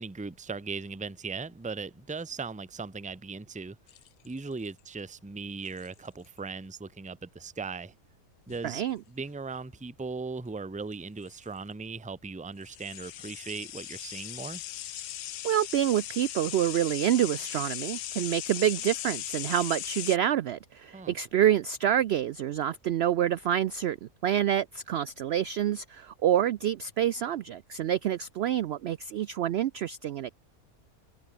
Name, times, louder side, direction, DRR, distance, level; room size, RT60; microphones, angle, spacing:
voice 1, 0.0-3.8 4.2-7.9 8.5-14.6 20.9-21.2, right 4 dB, 10° right, 0.6 m, -38 dB
sound 1, 3.9-4.7 5.7-6.1 8.5-8.7 10.9-11.0 11.2-11.4 12.6-20.2, left 13 dB, 85° left, 1.2 m, -38 dB
voice 2, 8.6-9.0 15.4-30.3, right 10 dB, 65° right, 0.6 m, -27 dB
omnidirectional pair, 1.5 m